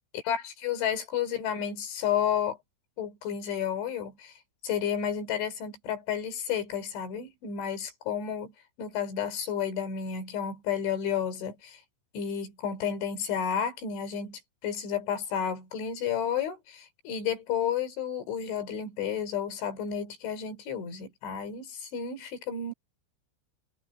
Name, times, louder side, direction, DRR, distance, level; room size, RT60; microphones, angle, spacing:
voice 1, 0.1-2.6 3.0-4.3 4.6-8.5 8.8-11.8 12.1-22.7, left 8 dB, 65° left, 6.2 m, -31 dB
omnidirectional pair, 5.9 m